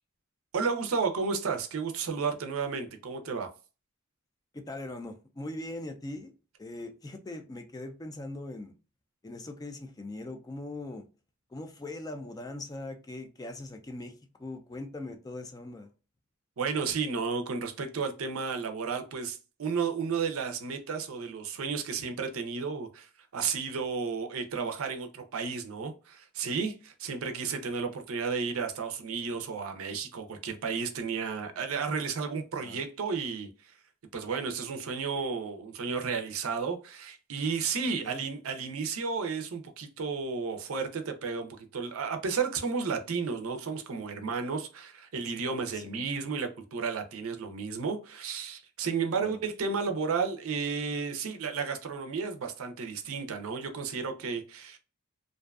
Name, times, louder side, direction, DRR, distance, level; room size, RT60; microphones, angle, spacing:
voice 1, 0.5-3.5 16.6-33.5 34.1-54.8, right 5 dB, 80° right, 0.5 m, -33 dB
voice 2, 4.5-6.3 6.6-8.7 9.2-11.1 11.5-15.9 32.6-32.8 38.0-38.2 45.7-46.1 49.2-49.4, left 2 dB, 20° left, 0.3 m, -41 dB
2.5 x 2.3 x 2.3 m
head